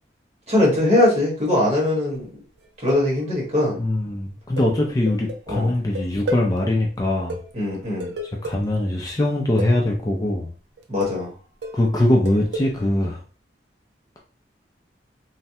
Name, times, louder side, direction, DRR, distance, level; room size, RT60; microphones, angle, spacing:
voice 1, 0.5-2.2 2.8-3.8 5.5-5.7 7.5-8.1 10.9-11.3, left 1 dB, 35° right, -4 dB, 1.2 m, -21 dB
sound 1, 2.6-3.5 4.6-6.6 7.0-7.1 7.3-8.8 9.6-10.0 10.8-11.3 11.6-12.9, right 1 dB, 75° right, 0.5 m, -33 dB
voice 2, 3.8-7.4 8.4-10.5 11.7-13.2, left 1 dB, 20° left, 0 dB, 0.4 m, -22 dB
3.2 x 2.1 x 2.7 m, 0.38 s
head